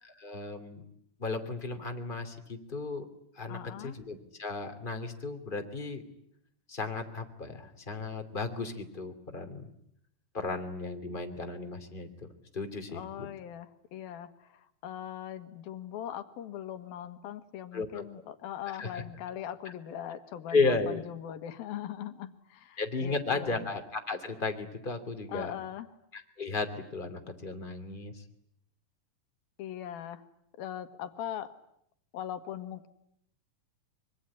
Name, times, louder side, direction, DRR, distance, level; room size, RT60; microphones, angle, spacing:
voice 1, 0.0-0.8 1.2-3.1 3.4-6.0 6.7-9.7 10.3-12.3 12.5-13.3 17.7-18.0 18.7-19.0 20.5-21.0 22.8-25.5 26.1-28.2, left 3 dB, 15° left, 6 dB, 2.5 m, -34 dB
voice 2, 3.5-3.9 12.9-23.6 25.3-25.9 29.6-30.2 30.6-31.5 32.1-32.9, left 10 dB, 80° left, 10 dB, 3.3 m, -40 dB
25.0 x 24.5 x 9.9 m, 0.74 s
omnidirectional pair, 4.3 m